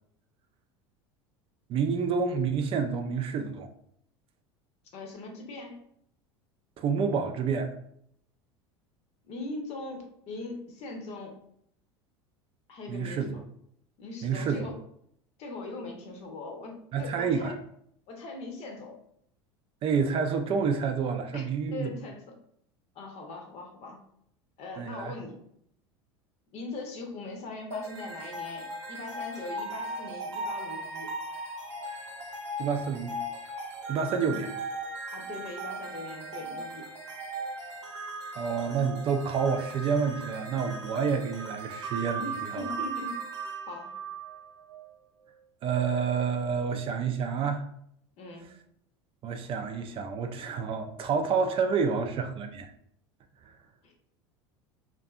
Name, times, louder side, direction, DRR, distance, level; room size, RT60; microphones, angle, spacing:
voice 1, 1.7-3.7 6.8-7.7 12.9-13.3 14.2-14.7 16.9-17.6 19.8-21.9 24.8-25.1 32.6-33.2 33.9-34.5 38.4-42.6 45.6-47.7 49.2-52.7, right 6 dB, 40° right, 0.3 m, -29 dB
voice 2, 4.9-5.8 9.2-11.4 12.7-13.4 14.0-14.8 15.4-17.5 18.1-19.0 21.3-22.2 22.9-24.0 24.6-25.4 26.5-31.1 35.1-36.9 42.2-43.3 43.7-44.0 48.2-48.6 53.8-53.9, left 3 dB, 50° left, 0.8 m, -40 dB
sound 1, 27.7-44.9, right 2 dB, 85° right, 0.6 m, -38 dB
2.5 x 2.5 x 2.3 m
hypercardioid pair, 80°, 14 cm